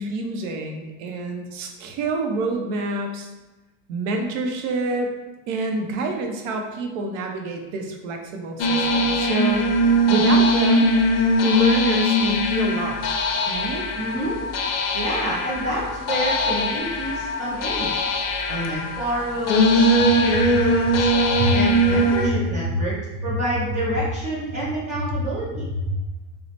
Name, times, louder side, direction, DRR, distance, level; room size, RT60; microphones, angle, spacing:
voice 1, 0.0-3.3 3.9-5.1 5.5-9.7 10.1-10.9 11.4-13.1 13.5-13.9 21.4-21.5 25.9-26.0, right 2 dB, 80° right, 3 dB, 0.6 m, -27 dB
sound 1, 8.6-22.3, equal, 65° left, 0.5 m, -21 dB
voice 2, 14.0-14.4 14.9-17.9 18.5-19.9 20.2-21.1 21.5-25.7, right 1 dB, 20° right, -7 dB, 0.4 m, -28 dB
3.0 x 2.0 x 2.7 m, 1.1 s
cardioid pair, 160°, 37 cm